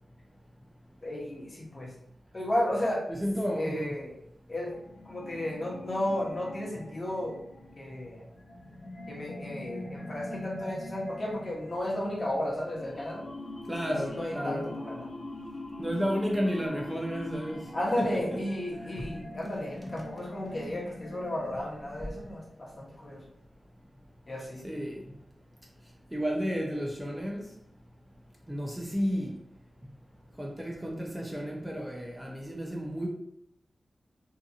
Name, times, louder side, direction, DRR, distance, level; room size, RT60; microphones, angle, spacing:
voice 1, 1.0-1.9 2.3-3.0 3.5-4.1 4.5-4.8 5.1-7.4 7.8-8.3 9.1-13.2 13.8-15.1 17.7-23.2 24.3-24.6, left 1 dB, 45° left, -3 dB, 0.9 m, -33 dB
voice 2, 3.1-3.9 13.7-14.7 15.8-17.6 18.0-18.1 24.6-25.0 26.1-27.4 28.5-29.3 30.4-33.1, equal, 10° right, -1 dB, 0.6 m, -32 dB
sound 1, 4.7-22.6, left 2 dB, 75° left, 0.5 m, -43 dB
2.7 x 2.5 x 2.5 m, 0.78 s
cardioid pair, 60°, 0 cm